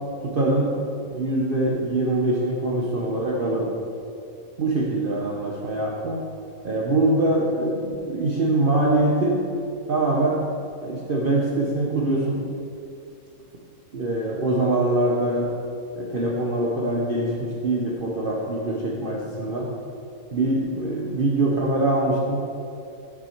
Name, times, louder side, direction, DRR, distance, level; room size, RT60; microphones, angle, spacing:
voice 1, 0.2-0.8 1.0-3.8 4.6-6.2 6.6-9.4 9.9-10.4 10.8-12.5 13.9-15.5 16.0-19.7 20.3-22.4, right 2 dB, 45° right, -3 dB, 0.9 m, -23 dB
8.2 x 6.2 x 4.5 m, 2.6 s
omnidirectional pair, 1.5 m